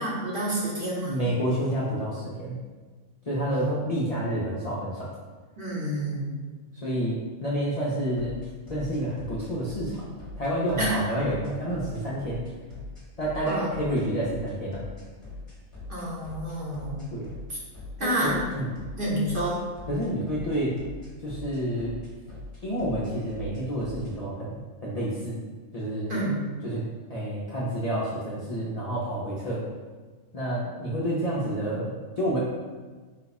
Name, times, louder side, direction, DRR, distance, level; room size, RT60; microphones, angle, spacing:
voice 1, 0.0-1.2 3.4-3.8 5.6-6.4 10.8-10.9 13.5-13.7 15.9-17.0 17.5-17.6 18.0-18.4 19.0-19.6 26.1-26.5, right 1 dB, 40° right, -6 dB, 1.1 m, -29 dB
voice 2, 1.0-2.6 3.3-5.1 6.8-8.4 8.7-10.0 10.4-12.4 13.2-14.8 17.1-17.3 18.0-18.7 19.9-20.8 21.2-22.0 22.6-25.4 25.7-26.1 26.6-29.6 30.3-32.4, right 1 dB, 40° left, -8 dB, 0.5 m, -29 dB
sound 1, 8.2-24.1, left 3 dB, 25° left, 1.2 m, -42 dB
4.7 x 2.3 x 4.0 m, 1.4 s
omnidirectional pair, 1.4 m